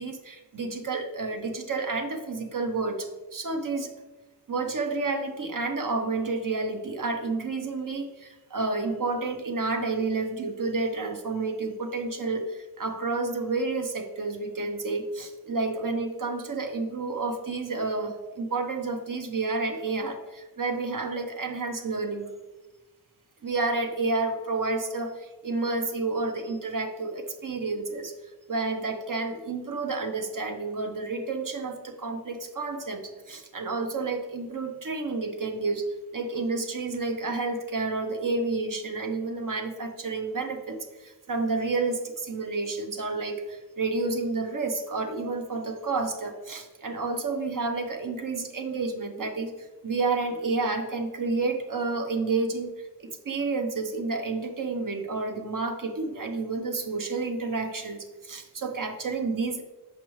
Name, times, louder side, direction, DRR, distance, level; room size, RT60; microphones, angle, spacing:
voice 1, 0.0-3.9 4.5-22.3 23.4-28.1 28.5-35.9 36.1-59.6, right 3 dB, 55° right, 5 dB, 0.8 m, -30 dB
6.1 x 5.2 x 3.1 m, 1.2 s
cardioid pair, 55°, 39 cm